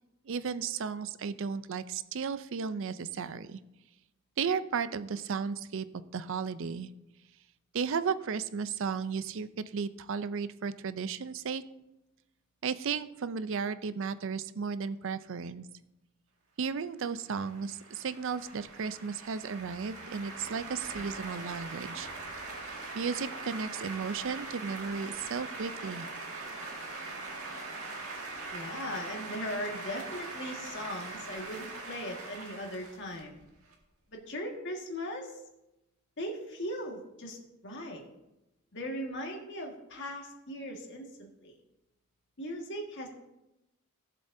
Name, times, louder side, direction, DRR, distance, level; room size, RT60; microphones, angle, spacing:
voice 1, 0.2-3.6 4.4-6.9 7.7-11.6 12.6-15.7 16.6-22.1 22.9-26.1, right 6 dB, 65° right, 14 dB, 0.5 m, -34 dB
sound 1, 17.1-33.7, right 3 dB, 85° right, 2.0 m, -42 dB
voice 2, 28.5-33.4 34.1-35.4 36.2-37.4 37.6-38.0 38.7-41.5 42.4-43.1, equal, 60° left, 0 dB, 1.7 m, -39 dB
17.0 x 7.6 x 2.7 m, 0.92 s
head